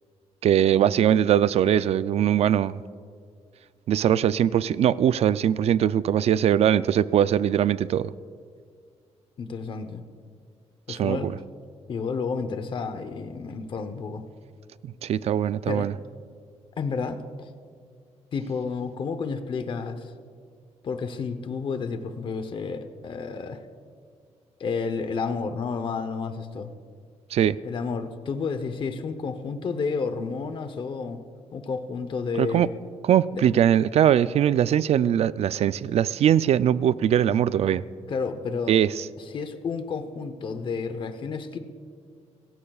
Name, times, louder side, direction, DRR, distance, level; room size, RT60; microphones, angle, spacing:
voice 1, 0.4-2.8 3.9-8.1 10.9-11.3 15.0-15.9 27.3-27.6 32.4-32.7 33.0-37.8 38.7-39.0, right 10 dB, 60° right, 0.4 m, -21 dB
voice 2, 9.4-10.0 10.9-11.3 11.9-14.2 15.7-15.9 16.8-17.5 18.3-20.1 20.8-23.6 24.6-26.7 27.6-31.2 31.5-32.7 33.3-33.4 38.1-38.8 39.2-41.6, left 5 dB, 45° left, 0.8 m, -31 dB
26.5 x 15.0 x 2.4 m
wide cardioid pair, 145°, 12 cm